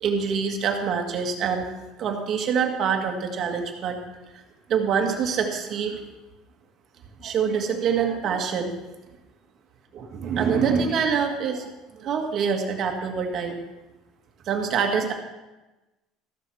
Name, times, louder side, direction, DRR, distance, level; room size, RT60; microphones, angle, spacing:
voice 1, 0.0-1.6 2.0-4.0 4.3-4.4 4.7-6.0 7.2-8.7 9.9-13.6 14.4-15.1, right 6 dB, 35° right, 3 dB, 1.6 m, -25 dB
13.5 x 7.7 x 6.3 m, 1.1 s
cardioid pair, 175°, 0 cm